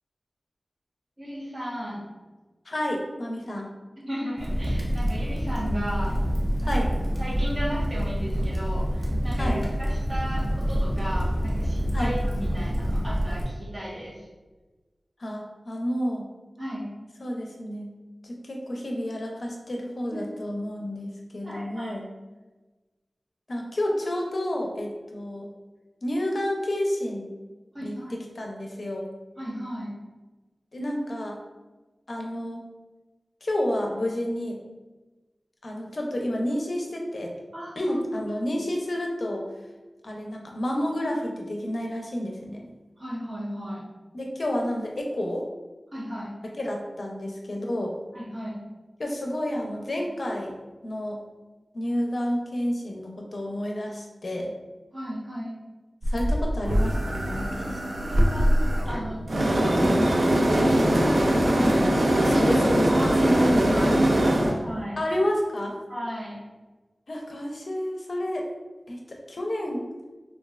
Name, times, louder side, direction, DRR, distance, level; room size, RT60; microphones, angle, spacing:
voice 1, 1.2-2.0 3.9-6.2 6.6-6.7 7.2-14.3 16.6-16.9 20.1-20.3 21.4-22.0 27.7-28.2 29.4-29.9 37.5-38.0 43.0-43.8 45.9-46.3 48.1-48.6 54.9-55.6 58.0-62.4 62.9-63.3 63.7-65.0 65.9-66.4, equal, 35° right, -7 dB, 1.1 m, -35 dB
voice 2, 2.7-3.7 6.7-6.9 9.4-9.6 11.9-12.1 15.2-16.3 17.2-17.9 18.2-22.1 23.5-25.5 26.0-27.3 27.8-29.1 30.7-31.4 32.1-32.6 33.4-34.6 35.6-37.3 37.8-39.5 40.0-42.6 44.1-45.5 46.6-47.9 49.0-50.5 50.8-51.2 51.7-54.5 56.1-57.9 60.7-60.8 62.2-64.0 65.0-65.7 67.1-68.5 68.9-69.8, left 1 dB, 60° left, 0 dB, 0.5 m, -30 dB
Crackle, 4.4-13.4, equal, 20° right, 0.6 m, -27 dB
sound 1, 56.0-64.6, right 1 dB, 70° right, 0.4 m, -22 dB
3.1 x 2.4 x 2.3 m, 1.2 s
wide cardioid pair, 75°, 0 cm